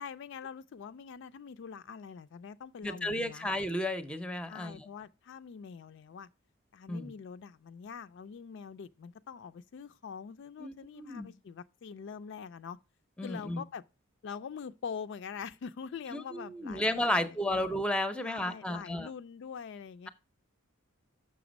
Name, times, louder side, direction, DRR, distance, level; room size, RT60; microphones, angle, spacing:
voice 1, 0.0-3.5 4.5-6.3 6.7-12.8 13.2-13.8 14.2-17.6 18.2-20.1, left 6 dB, 55° left, 0.3 m, -44 dB
voice 2, 2.8-4.9 6.9-7.1 10.6-11.3 13.2-13.6 16.1-19.1, left 1 dB, 5° left, 0.5 m, -33 dB
6.7 x 5.9 x 5.1 m
head